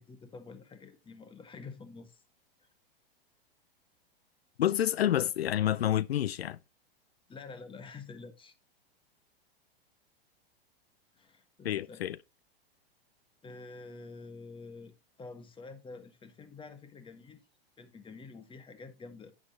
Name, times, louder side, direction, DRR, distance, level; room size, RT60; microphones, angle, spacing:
voice 1, 0.0-2.2 2.6-2.7 7.3-8.5 11.2-12.0 13.4-14.9 15.2-17.4 17.8-19.3, left 4 dB, 15° left, 1.5 m, -48 dB
voice 2, 4.6-6.6 11.6-12.2, left 11 dB, 85° left, 0.5 m, -28 dB
9.6 x 9.0 x 2.9 m
hypercardioid pair, 105°, 30 cm